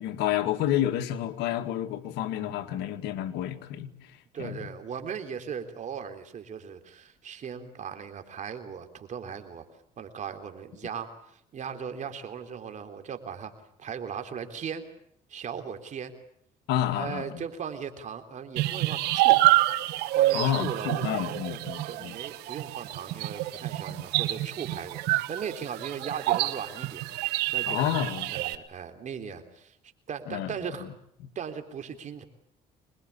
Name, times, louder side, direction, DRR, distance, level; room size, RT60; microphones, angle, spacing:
voice 1, 0.0-3.9 4.4-4.6 16.7-17.4 20.3-22.1 23.9-24.1 27.7-28.3 30.3-30.5, left 11 dB, 85° left, 1.9 m, -29 dB
voice 2, 4.3-9.7 10.0-13.5 13.8-14.9 15.3-16.1 16.9-19.4 20.2-21.6 21.9-28.0 28.3-29.8 30.1-30.9 31.4-32.2, right 7 dB, 50° right, 3.6 m, -38 dB
sound 1, 18.6-28.6, right 17 dB, 90° right, 1.3 m, -27 dB
25.5 x 21.5 x 8.5 m
cardioid pair, 105°, 17 cm